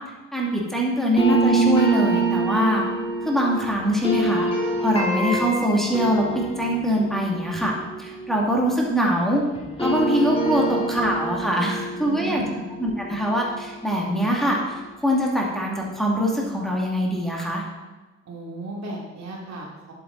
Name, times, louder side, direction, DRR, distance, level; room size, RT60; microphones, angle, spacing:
voice 1, 0.3-2.8 3.2-4.5 4.8-7.7 8.0-9.4 9.8-12.4 12.8-14.7 15.0-17.6, equal, ahead, -3 dB, 2.5 m, -23 dB
sound 1, 1.2-9.2 9.5-14.5, right 2 dB, 20° left, 2.6 m, -26 dB
voice 2, 12.0-12.6 18.3-19.9, right 2 dB, 60° right, -2 dB, 3.0 m, -36 dB
11.0 x 8.7 x 4.1 m, 1.2 s
cardioid pair, 90°, 30 cm